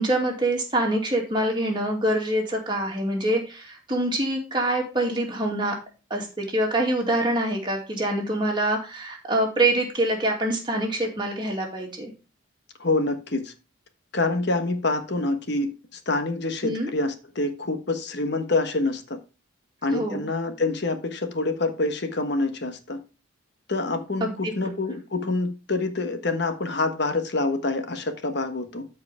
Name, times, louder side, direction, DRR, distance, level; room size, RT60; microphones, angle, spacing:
voice 1, 0.0-5.8 6.1-12.1 16.6-16.9 19.9-20.3 24.2-24.7, right 1 dB, 20° right, 2.4 m, -25 dB
voice 2, 12.8-13.5 14.1-19.2 19.8-23.0 23.7-28.9, left 2 dB, 55° left, 1.2 m, -26 dB
13.5 x 4.8 x 3.5 m
head